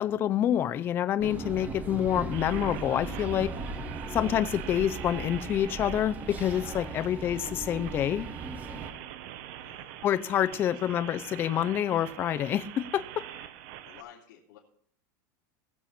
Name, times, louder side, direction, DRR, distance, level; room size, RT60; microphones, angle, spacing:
voice 1, 0.0-3.5 4.1-8.3 10.0-13.2, left 10 dB, 20° left, 12 dB, 0.4 m, -27 dB
sound 1, 1.2-8.9, right 3 dB, 15° right, 0.9 m, -38 dB
sound 2, 2.3-14.0, right 11 dB, 45° right, 0.8 m, -44 dB
voice 2, 9.6-9.9 10.6-10.8 13.8-14.6, left 10 dB, 70° left, -6 dB, 3.0 m, -52 dB
20.0 x 7.4 x 4.2 m, 0.62 s
supercardioid pair, 170°, 11 cm